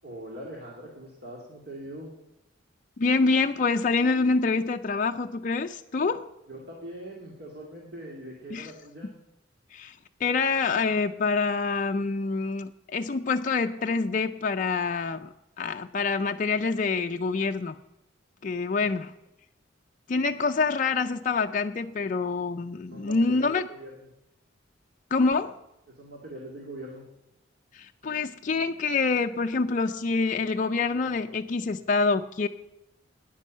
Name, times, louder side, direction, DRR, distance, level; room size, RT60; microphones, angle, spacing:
voice 1, 0.0-2.1 6.5-9.1 18.7-18.9 22.9-24.1 25.9-27.0, right 1 dB, 55° right, -2 dB, 2.1 m, -42 dB
voice 2, 3.0-6.3 8.5-8.7 9.7-9.9 10.2-15.3 15.6-17.8 18.4-19.1 20.1-23.7 25.1-25.6 27.7-32.5, left 4 dB, 40° left, 5 dB, 0.4 m, -26 dB
9.9 x 9.9 x 7.4 m, 0.91 s
head